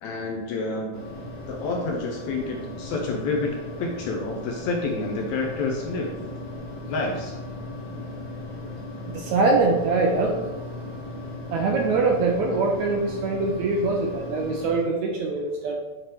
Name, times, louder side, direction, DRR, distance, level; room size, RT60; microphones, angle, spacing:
voice 1, 0.0-1.0 1.5-3.5 3.8-6.1 6.9-7.3, left 3 dB, 80° left, 1 dB, 1.6 m, -28 dB
sound 1, 0.9-14.7, left 1 dB, 15° left, 1.3 m, -37 dB
voice 2, 9.1-10.3 11.5-15.8, right 3 dB, 80° right, 1 dB, 1.7 m, -23 dB
7.4 x 3.3 x 4.4 m, 1.2 s
omnidirectional pair, 3.9 m